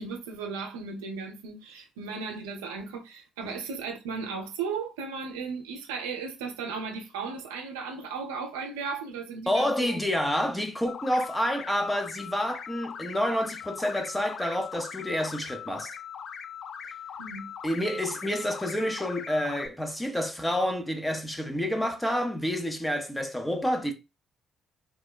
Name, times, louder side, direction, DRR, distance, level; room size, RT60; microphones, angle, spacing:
voice 1, 0.0-10.0 17.2-17.5, right 5 dB, 80° right, 0.5 m, -36 dB
voice 2, 9.5-16.0 17.6-23.9, equal, 10° left, 0.7 m, -28 dB
sound 1, 10.9-19.7, left 7 dB, 60° left, 0.3 m, -41 dB
3.6 x 2.1 x 2.2 m
hypercardioid pair, 45°, 0 cm